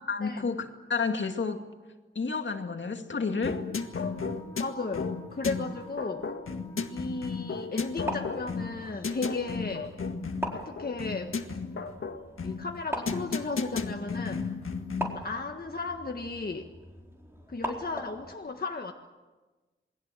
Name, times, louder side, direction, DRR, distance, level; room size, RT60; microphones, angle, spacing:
voice 1, 0.0-1.6 2.2-3.6, left 4 dB, 65° left, 5 dB, 2.3 m, -30 dB
sound 1, 3.4-15.2, left 4 dB, 85° left, 1.8 m, -34 dB
Wind instrument woodwind instrument, 3.7-8.9, equal, 10° left, 2.4 m, -53 dB
voice 2, 4.6-6.3 6.9-9.9 10.5-11.3 12.4-14.5 15.0-16.7 17.5-18.9, left 3 dB, 45° left, 3 dB, 1.6 m, -35 dB
sound 2, 7.8-18.3, right 1 dB, 10° right, 4.3 m, -41 dB
28.0 x 21.0 x 7.7 m, 1.3 s
wide cardioid pair, 80°, 21 cm